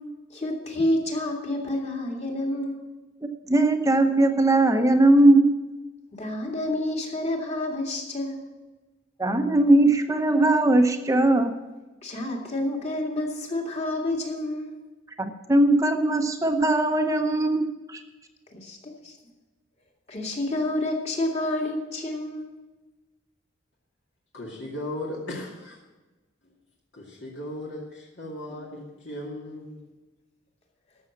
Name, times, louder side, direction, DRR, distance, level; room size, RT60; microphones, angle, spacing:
voice 1, 0.3-2.8 6.1-8.4 12.0-14.8 18.6-19.2 20.1-22.5, left 1 dB, 35° left, 0 dB, 2.2 m, -29 dB
voice 2, 3.2-5.5 9.2-11.6 15.2-18.0, right 2 dB, 15° right, 6 dB, 0.8 m, -20 dB
voice 3, 24.3-25.8 26.9-29.8, left 1 dB, 65° left, -4 dB, 2.2 m, -36 dB
13.5 x 6.3 x 7.1 m, 1.2 s
head